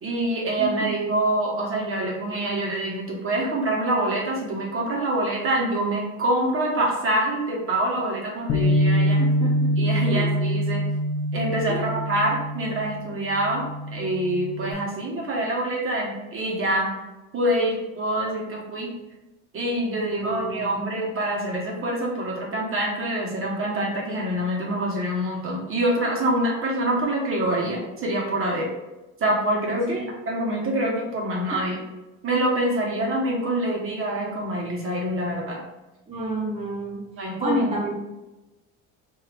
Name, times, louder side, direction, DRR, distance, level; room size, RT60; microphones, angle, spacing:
voice 1, 0.0-9.2 9.8-10.8 11.3-13.6 13.9-16.9 17.3-18.9 19.5-28.7 29.2-31.8 32.2-35.6 37.2-37.7, right 1 dB, 35° right, -2 dB, 1.1 m, -25 dB
voice 2, 0.6-0.9 9.2-9.7 10.0-10.3 11.7-12.0 18.9-19.0 20.1-20.8 29.9-30.0 36.1-37.9, right 1 dB, 20° right, -4 dB, 0.6 m, -31 dB
Bass guitar, 8.5-14.7, equal, 50° left, 0.7 m, -25 dB
2.6 x 2.6 x 3.2 m, 1.0 s
supercardioid pair, 90°, 35 cm